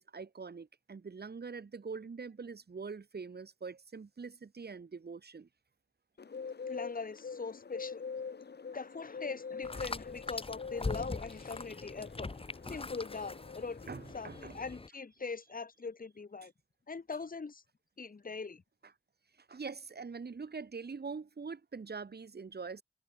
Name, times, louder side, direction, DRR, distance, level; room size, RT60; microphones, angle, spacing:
voice 1, 0.0-5.5 13.9-14.6 19.4-22.8, right 5 dB, 75° right, 2.3 m, -44 dB
Bird, 6.2-14.5, left 5 dB, 80° left, 1.5 m, -45 dB
voice 2, 6.7-8.0 8.7-12.3 12.7-13.8 14.1-16.5 16.9-17.6 18.0-18.6, left 4 dB, 60° left, 1.6 m, -41 dB
sound 1, 9.6-14.9, left 3 dB, 35° left, 1.0 m, -42 dB
wide cardioid pair, 70°, 17 cm